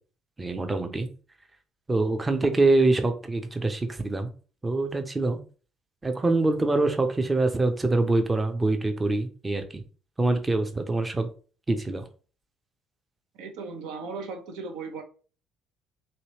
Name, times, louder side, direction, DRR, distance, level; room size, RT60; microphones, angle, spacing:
voice 1, 0.4-1.1 1.9-4.3 4.6-5.4 6.0-9.8 10.2-11.3 11.7-12.0, right 2 dB, 20° right, 6 dB, 0.6 m, -24 dB
voice 2, 13.3-15.0, right 4 dB, 65° right, 6 dB, 0.5 m, -37 dB
3.0 x 2.8 x 2.9 m, 0.38 s
figure-of-eight pair, 55°, 0 cm